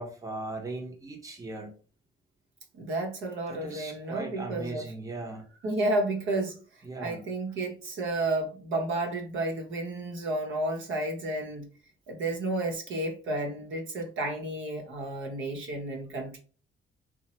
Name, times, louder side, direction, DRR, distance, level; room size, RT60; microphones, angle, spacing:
voice 1, 0.0-1.7 3.5-5.4 6.8-7.2, right 2 dB, 15° right, 0.7 m, -38 dB
voice 2, 2.7-4.9 5.6-6.6 7.0-11.7 12.1-16.4, right 2 dB, 80° right, 0.9 m, -31 dB
3.0 x 2.1 x 2.8 m
cardioid pair, 90°, 20 cm